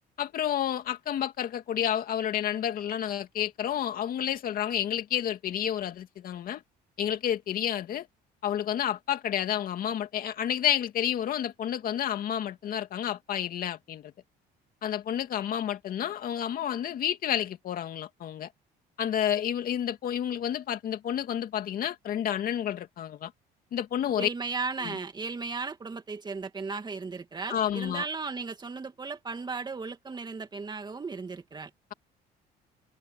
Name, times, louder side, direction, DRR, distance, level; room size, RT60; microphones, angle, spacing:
voice 1, 0.2-6.6 7.0-8.1 8.4-14.1 14.8-18.5 19.0-23.3 23.7-24.3 24.8-25.0 27.5-28.1, left 10 dB, 60° left, 2.4 m, -30 dB
voice 2, 24.2-31.7, right 4 dB, 25° right, 2.5 m, -36 dB
cardioid pair, 110°, 17 cm